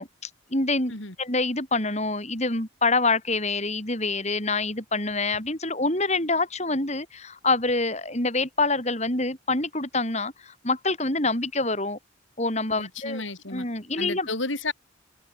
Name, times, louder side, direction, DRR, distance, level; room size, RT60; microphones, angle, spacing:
voice 1, 0.0-0.9 1.2-12.0 12.4-13.2 13.5-14.3, left 3 dB, 35° left, 6.2 m, -26 dB
voice 2, 12.8-13.6 14.0-14.7, left 3 dB, 75° left, 6.1 m, -32 dB
head